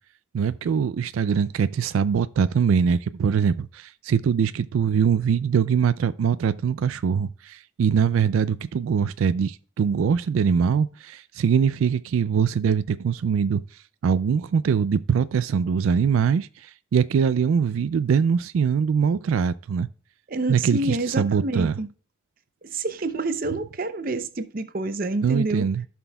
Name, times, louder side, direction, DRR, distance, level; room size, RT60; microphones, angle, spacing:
voice 1, 0.3-13.6 14.0-19.9 20.5-21.8 25.2-25.8, right 6 dB, 90° right, 0.3 m, -22 dB
voice 2, 20.3-21.9 22.6-25.7, right 2 dB, 45° right, 0.6 m, -28 dB
14.5 x 6.0 x 2.3 m
head